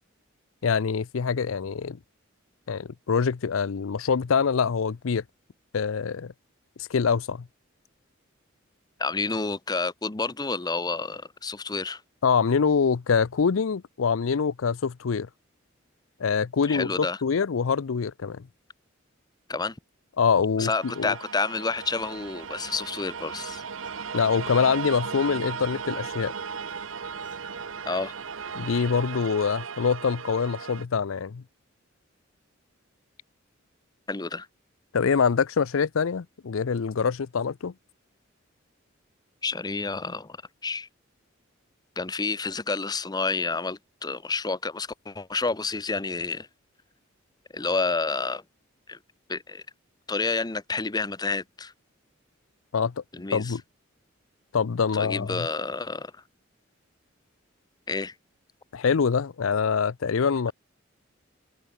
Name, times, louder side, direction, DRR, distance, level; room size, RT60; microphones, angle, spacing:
voice 1, 0.6-2.0 2.7-5.2 5.7-6.3 6.8-7.5 12.2-15.3 16.2-18.5 20.2-21.1 24.1-26.3 28.5-31.4 34.9-37.7 52.7-53.0 53.3-53.6 54.5-55.5 58.7-60.5, left 6 dB, 80° left, 0.5 m, -25 dB
voice 2, 9.0-12.0 16.6-17.2 19.5-19.8 20.6-23.6 27.9-28.1 34.1-34.5 39.4-40.4 40.6-40.9 42.0-46.5 47.5-48.4 48.9-49.0 49.3-49.6 50.1-51.7 53.1-53.5 54.9-56.1 57.9-58.1, left 4 dB, 20° left, 0.7 m, -29 dB
sound 1, 20.8-30.8, right 6 dB, 75° right, 1.0 m, -36 dB
sound 2, 21.7-28.8, right 3 dB, 40° right, 3.0 m, -56 dB
head